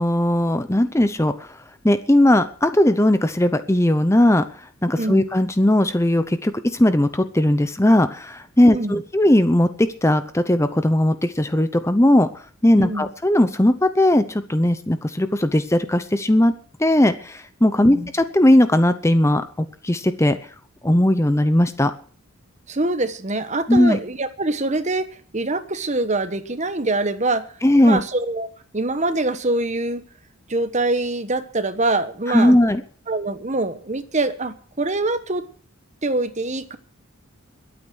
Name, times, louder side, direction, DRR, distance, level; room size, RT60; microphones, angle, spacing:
voice 1, 0.0-1.6 1.8-4.4 4.8-16.5 16.8-20.4 20.8-21.9 23.7-24.0 27.6-28.0 32.3-32.8, left 1 dB, 15° left, 11 dB, 0.7 m, -18 dB
voice 2, 8.6-9.0 12.8-13.1 17.8-18.1 22.7-27.5 27.8-28.5 28.7-30.0 30.5-32.6 33.1-35.4 36.0-36.8, right 2 dB, 35° right, 11 dB, 1.2 m, -24 dB
22.0 x 8.8 x 6.3 m, 0.44 s
head